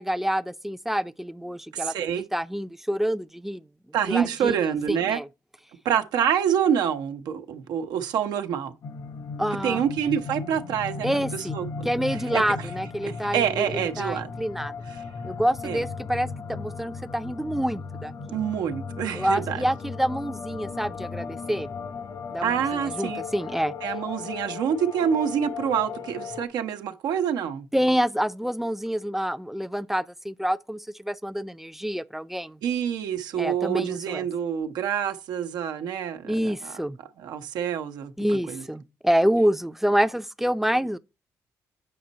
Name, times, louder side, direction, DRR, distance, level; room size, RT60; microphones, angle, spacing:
voice 1, 0.0-1.9 2.3-3.6 4.0-4.6 4.9-5.3 9.4-9.8 11.0-14.7 15.2-18.4 19.1-21.7 22.3-23.7 27.7-32.6 33.4-34.2 36.2-37.0 38.2-41.0, equal, 5° right, 0.5 m, -27 dB
voice 2, 1.7-2.2 3.9-5.2 5.8-8.7 9.6-11.2 11.5-12.7 13.3-14.3 15.6-15.8 18.3-19.6 22.4-23.2 23.8-27.7 32.6-36.7 37.2-38.1 38.5-38.6, right 8 dB, 85° right, 0.9 m, -27 dB
sound 1, 8.8-26.5, left 5 dB, 65° left, 1.1 m, -36 dB
7.7 x 5.3 x 4.0 m
cardioid pair, 70°, 7 cm